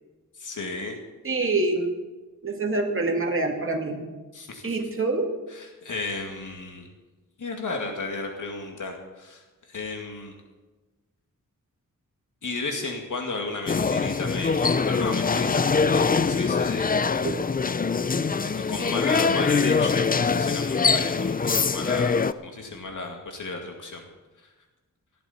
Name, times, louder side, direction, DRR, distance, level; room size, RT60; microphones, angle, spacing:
voice 1, 0.4-1.0 4.3-4.7 5.5-6.9 7.4-10.3 12.4-17.0 18.4-24.1, left 3 dB, 70° left, 2 dB, 2.2 m, -34 dB
voice 2, 1.2-2.0 2.4-4.0 4.6-5.3 17.2-17.4, right 2 dB, 40° right, 2 dB, 2.3 m, -26 dB
sound 1, 13.7-22.3, left 5 dB, 25° left, 0.5 m, -23 dB
18.5 x 13.5 x 4.3 m, 1.2 s
wide cardioid pair, 120°, 32 cm